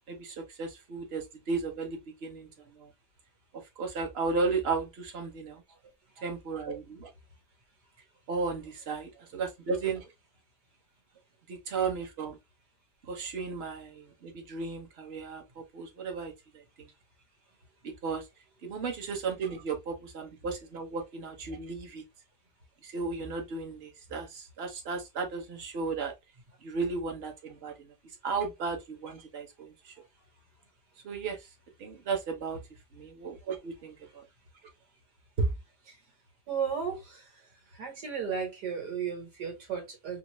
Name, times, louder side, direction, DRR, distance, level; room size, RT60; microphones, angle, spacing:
voice 1, 0.1-2.5 2.8-2.9 3.8-5.6 6.2-7.1 8.3-10.1 11.5-12.4 13.0-16.3 16.8-16.9 17.8-18.3 18.6-22.0 22.8-26.1 26.6-27.9 28.2-29.9 31.0-31.5 31.8-32.6 32.9-34.2 35.4-35.5, right 4 dB, 45° right, 1.0 m, -34 dB
voice 2, 36.5-37.0 37.8-40.2, right 7 dB, 70° right, 2.1 m, -34 dB
3.8 x 2.1 x 3.1 m
omnidirectional pair, 1.8 m